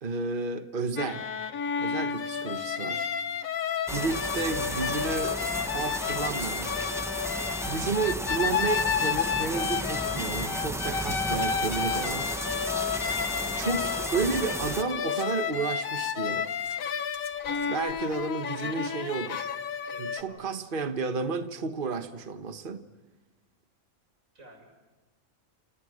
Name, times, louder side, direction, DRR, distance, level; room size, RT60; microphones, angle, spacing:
voice 1, 0.0-1.3 1.8-3.1 3.9-5.4 5.7-6.7 7.6-12.3 13.5-16.5 17.7-19.5 20.0-22.8, right 4 dB, 40° right, 8 dB, 1.4 m, -32 dB
sound 1, 1.0-20.2, left 7 dB, 80° left, 1.5 m, -31 dB
sound 2, 3.9-14.8, equal, ahead, 0.8 m, -34 dB
sound 3, 11.0-15.3 15.6-18.2 18.4-18.5, left 5 dB, 55° left, 1.6 m, -50 dB
voice 2, 17.4-18.2 19.9-20.7 24.3-24.7, right 1 dB, 75° right, 3 dB, 7.0 m, -52 dB
29.0 x 28.5 x 6.6 m, 1.2 s
omnidirectional pair, 1.4 m